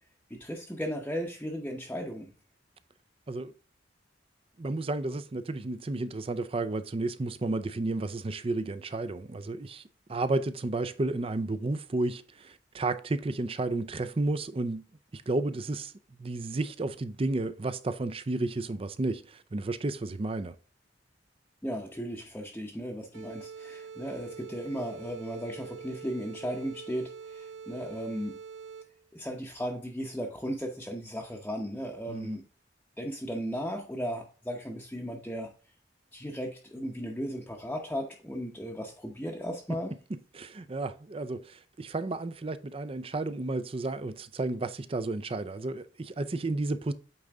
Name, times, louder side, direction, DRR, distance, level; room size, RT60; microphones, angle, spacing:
voice 1, 0.3-2.3 21.6-28.4 29.1-32.4 33.0-35.5 36.1-40.0, equal, 10° left, 0.8 m, -36 dB
voice 2, 4.6-9.8 10.1-14.9 15.1-15.9 16.2-20.5 32.1-32.4 40.1-46.9, right 2 dB, 30° right, 0.5 m, -32 dB
sound 1, 23.1-29.1, right 6 dB, 90° right, 0.9 m, -45 dB
8.7 x 3.8 x 3.5 m
head